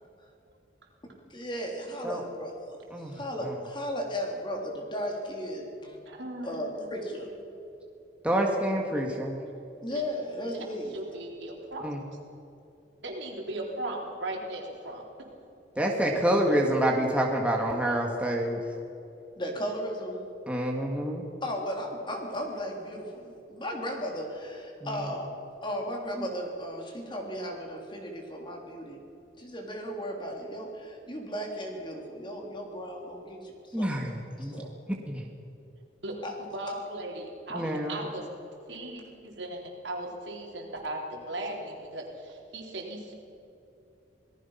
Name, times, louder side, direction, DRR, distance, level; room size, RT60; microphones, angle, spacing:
voice 1, 1.3-2.8 3.0-6.0 6.4-7.3 9.8-10.9 19.4-20.2 21.4-25.3 25.6-29.0 29.4-34.7 36.2-36.3, equal, 25° left, 1 dB, 3.5 m, -35 dB
voice 2, 2.9-3.5 8.2-9.4 11.8-12.0 15.8-18.6 20.5-21.2 33.7-34.6 35.1-35.3 37.5-38.0, right 1 dB, 5° right, -1 dB, 1.9 m, -27 dB
voice 3, 6.1-6.9 9.9-10.0 10.5-10.7 10.9-11.9 13.0-15.0 36.0-38.3 38.7-43.1, right 1 dB, 80° right, 0 dB, 4.0 m, -37 dB
27.5 x 18.0 x 5.8 m, 2.8 s
head